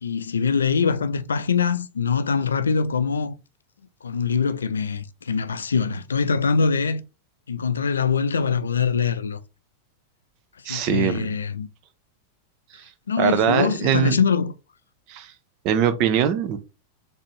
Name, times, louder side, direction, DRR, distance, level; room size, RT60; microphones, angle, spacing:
voice 1, 0.0-3.3 4.0-7.0 7.5-9.4 10.7-11.7 13.1-14.5, left 5 dB, 70° left, 0.4 m, -23 dB
voice 2, 10.6-11.3 13.2-14.2 15.1-15.3 15.6-16.6, right 8 dB, 40° right, 0.6 m, -22 dB
4.1 x 3.4 x 3.1 m
figure-of-eight pair, 90°, 0 cm